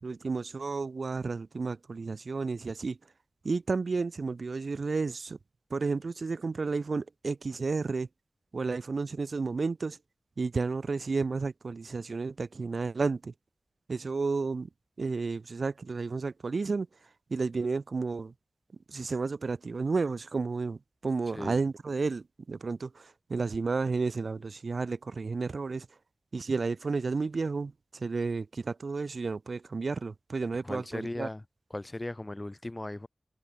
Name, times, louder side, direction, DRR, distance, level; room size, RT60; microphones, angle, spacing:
voice 1, 0.0-3.0 3.4-5.4 5.7-8.1 8.5-10.0 10.4-13.3 13.9-14.7 15.0-16.9 17.3-18.3 18.9-25.9 26.3-31.3, right 4 dB, 70° right, 2.3 m, -32 dB
voice 2, 30.6-31.4 31.7-33.1, left 1 dB, 25° left, 1.7 m, -37 dB
wide cardioid pair, 85°, 0 cm